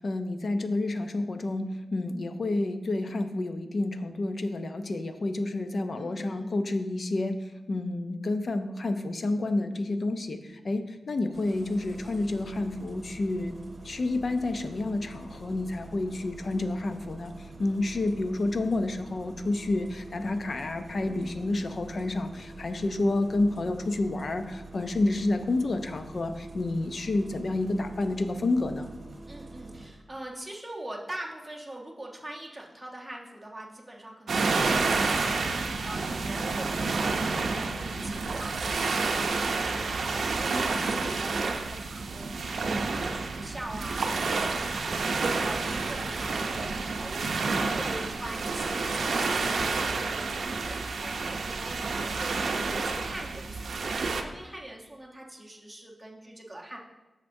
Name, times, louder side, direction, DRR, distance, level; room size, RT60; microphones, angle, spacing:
voice 1, 0.0-13.5 13.8-28.9, left 2 dB, 45° left, 8 dB, 0.5 m, -29 dB
voice 2, 6.0-6.5 29.3-56.8, right 1 dB, 5° right, -2 dB, 1.0 m, -43 dB
Engine starting, 11.3-29.9, right 2 dB, 35° right, 1.3 m, -46 dB
sound 1, 34.3-54.2, right 4 dB, 70° right, 0.5 m, -29 dB
9.0 x 6.5 x 2.6 m, 1.1 s
wide cardioid pair, 155°, 0 cm